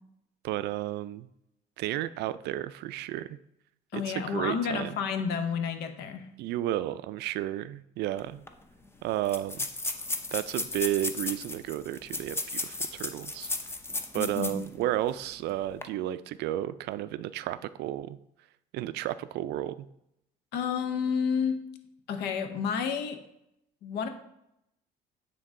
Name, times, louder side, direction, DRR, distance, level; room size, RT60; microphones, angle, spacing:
voice 1, 0.4-1.3 1.8-3.4 3.9-5.0 6.4-8.4 9.0-9.7 10.3-13.5 14.1-18.2 18.7-19.9, right 14 dB, 80° right, 15 dB, 0.4 m, -32 dB
voice 2, 3.9-6.3 14.1-14.6 20.5-21.6 22.1-23.2 23.8-24.1, left 6 dB, 80° left, 8 dB, 0.9 m, -30 dB
sound 1, 8.2-8.3 8.5-8.6 9.2-14.7 15.1-15.2 15.7-15.8, left 2 dB, 15° left, 0.6 m, -34 dB
8.8 x 3.8 x 3.7 m, 0.80 s
cardioid pair, 110°, 17 cm